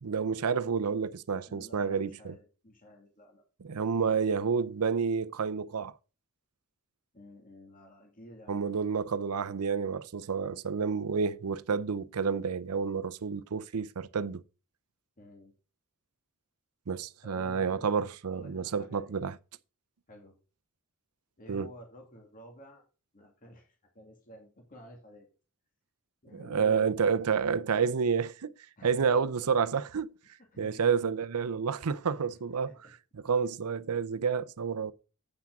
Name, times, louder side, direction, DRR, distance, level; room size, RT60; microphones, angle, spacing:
voice 1, 0.0-2.3 3.6-5.9 8.5-14.4 16.9-19.4 21.5-21.7 26.3-28.5 28.8-30.1 30.6-32.7 33.2-34.9, right 6 dB, 80° right, 0.6 m, -29 dB
voice 2, 1.5-3.4 7.1-8.7 15.2-15.5 17.2-19.2 20.1-20.3 21.4-22.8 23.1-25.3 26.2-26.9 28.8-29.2 30.5-30.9 32.3-32.7, equal, 40° left, 2.3 m, -51 dB
8.6 x 5.9 x 5.9 m
head